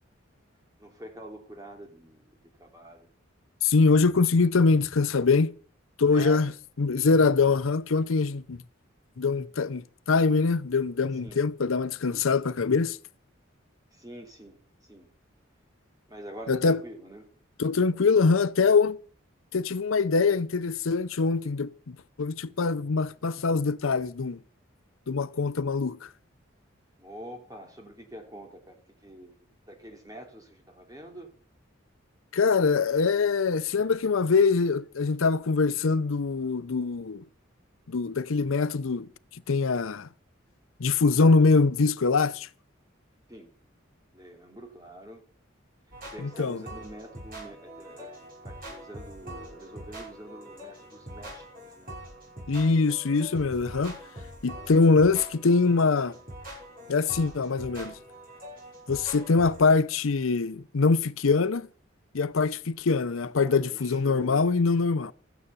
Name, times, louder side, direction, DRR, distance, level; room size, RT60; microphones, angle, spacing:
voice 1, 0.8-3.1 6.1-6.5 11.2-11.5 13.9-15.1 16.1-17.3 27.0-31.3 43.3-43.5 44.1-45.2 46.0-48.1 48.4-52.0 63.4-64.5, right 1 dB, 20° right, 3.1 m, -46 dB
voice 2, 3.6-5.5 6.0-6.5 6.8-8.6 9.2-13.0 16.5-16.8 17.6-19.0 19.5-24.4 25.1-26.1 32.3-37.2 37.9-39.1 39.5-40.1 40.8-42.5 46.2-46.6 52.5-54.0 54.4-56.2 56.9-57.9 58.9-61.7 62.1-65.1, left 4 dB, 85° left, 0.6 m, -23 dB
sound 1, 45.9-59.6, right 1 dB, 45° right, 7.2 m, -44 dB
13.5 x 9.3 x 6.9 m
head